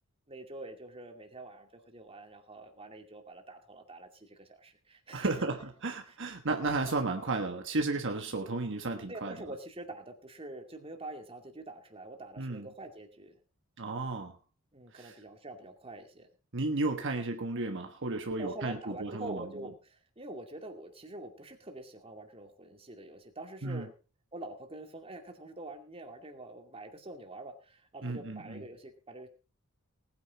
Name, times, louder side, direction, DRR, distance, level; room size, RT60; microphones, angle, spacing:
voice 1, 0.3-5.3 9.1-13.4 14.7-16.3 18.4-23.9 24.3-29.3, right 2 dB, 25° right, 4 dB, 2.4 m, -45 dB
voice 2, 5.1-9.3 12.4-12.7 13.8-14.4 14.9-15.1 16.5-19.4 23.6-23.9 28.0-28.6, right 3 dB, 60° right, 4 dB, 1.4 m, -33 dB
19.0 x 9.5 x 4.2 m, 0.34 s
head